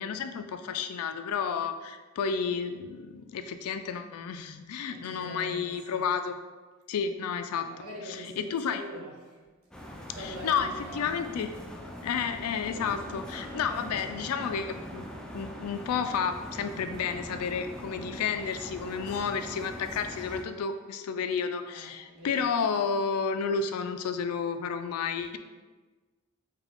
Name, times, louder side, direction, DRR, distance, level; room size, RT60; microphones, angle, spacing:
voice 1, 0.0-6.4 6.9-7.7 8.4-8.8 10.2-11.5 12.0-15.1 15.3-25.4, left 6 dB, 85° left, 9 dB, 0.3 m, -31 dB
voice 2, 4.9-6.0 7.6-9.4 10.1-11.5 18.9-19.5 21.6-22.5, equal, 80° right, -3 dB, 1.0 m, -44 dB
sound 1, 9.7-20.4, equal, 5° left, 0.3 m, -42 dB
4.7 x 2.3 x 3.5 m, 1.3 s
head